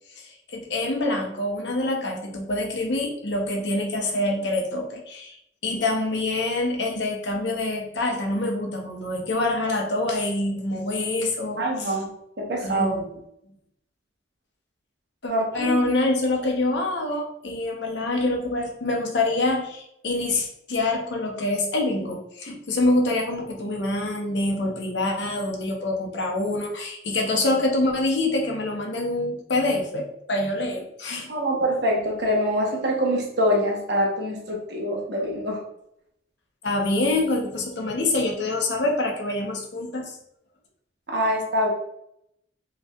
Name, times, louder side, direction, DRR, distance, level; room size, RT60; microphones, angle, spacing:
voice 1, 0.2-5.4 5.6-11.9 12.6-13.2 15.2-31.3 36.6-40.2, left 2 dB, 70° left, 1 dB, 0.9 m, -26 dB
voice 2, 11.6-12.1 12.4-13.0 15.3-15.7 31.3-35.6 41.1-41.7, equal, 60° right, -1 dB, 1.1 m, -24 dB
5.3 x 3.1 x 2.4 m, 0.76 s
head